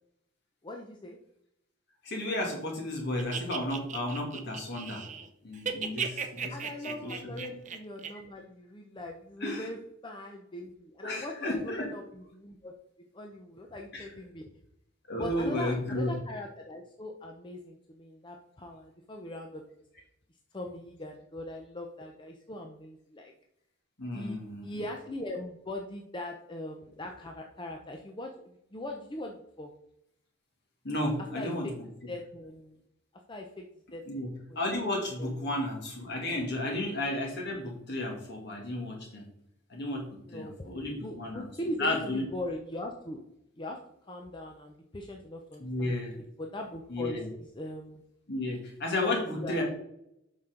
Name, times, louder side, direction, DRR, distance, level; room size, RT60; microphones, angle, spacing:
voice 1, 0.6-1.2 6.5-9.8 10.0-11.3 11.6-14.5 15.2-19.6 20.5-23.3 24.1-24.4 24.6-29.7 31.3-31.7 32.1-32.8 33.3-33.6 33.9-34.6 35.2-35.4 40.3-40.7 41.0-43.2 43.6-43.8 44.1-45.9 46.4-47.2 47.5-48.0 49.0-49.6, left 1 dB, 25° left, 2 dB, 0.7 m, -40 dB
voice 2, 2.0-5.0 5.4-6.6 7.0-7.3 9.4-9.7 11.0-11.9 13.9-14.1 15.1-16.1 24.0-24.8 30.8-31.7 34.1-39.3 39.7-41.5 41.8-42.3 45.6-46.1 46.9-47.3 48.3-49.6, left 1 dB, 55° left, 0 dB, 2.5 m, -33 dB
sound 1, 3.2-5.3 5.5-8.1, right 6 dB, 35° right, 0.7 m, -36 dB
8.2 x 5.8 x 3.8 m, 0.78 s
head